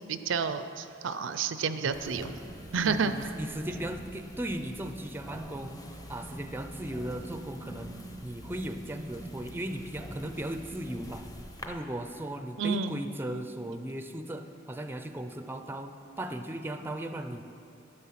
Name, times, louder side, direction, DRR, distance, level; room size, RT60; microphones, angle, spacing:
voice 1, 0.1-2.3 2.7-3.3 12.6-13.0, right 5 dB, 80° right, 11 dB, 0.5 m, -30 dB
sound 1, 1.9-11.7, equal, 20° left, 0.8 m, -44 dB
voice 2, 2.8-11.3 11.7-17.4, right 1 dB, 10° right, 8 dB, 0.5 m, -37 dB
12.0 x 7.9 x 5.8 m, 2.7 s
head